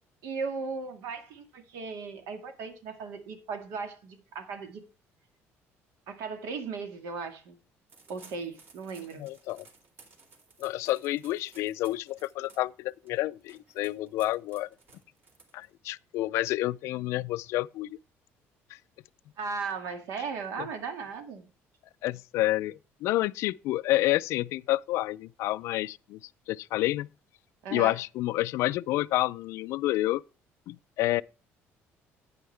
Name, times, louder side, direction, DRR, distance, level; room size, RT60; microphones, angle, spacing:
voice 1, 0.2-4.8 6.1-7.6 8.1-9.3 19.4-21.5 27.6-28.0, right 5 dB, 80° right, 1.9 m, -37 dB
sound 1, 7.9-15.9, right 4 dB, 45° right, 2.4 m, -57 dB
voice 2, 9.2-9.6 10.6-14.7 15.5-18.0 20.6-20.7 22.0-26.2 26.5-27.1 27.7-30.2 30.7-31.2, left 16 dB, 65° left, 0.4 m, -29 dB
9.4 x 9.2 x 3.3 m
cardioid pair, 175°, 5 cm